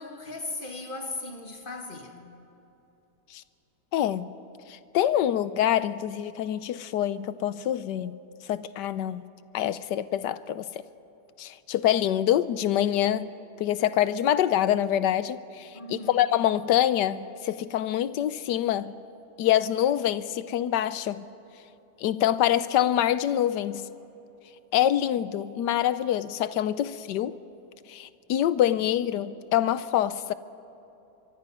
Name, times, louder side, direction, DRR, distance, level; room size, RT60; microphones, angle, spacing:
voice 1, 0.0-2.2 15.7-16.2, left 2 dB, 30° left, 2.0 m, -37 dB
voice 2, 3.9-4.3 4.9-8.2 8.5-9.2 9.5-10.6 11.4-13.3 13.6-18.9 19.4-21.2 22.0-23.8 24.7-27.4 27.9-30.3, left 11 dB, 85° left, 1.3 m, -25 dB
24.5 x 23.5 x 5.5 m
omnidirectional pair, 1.8 m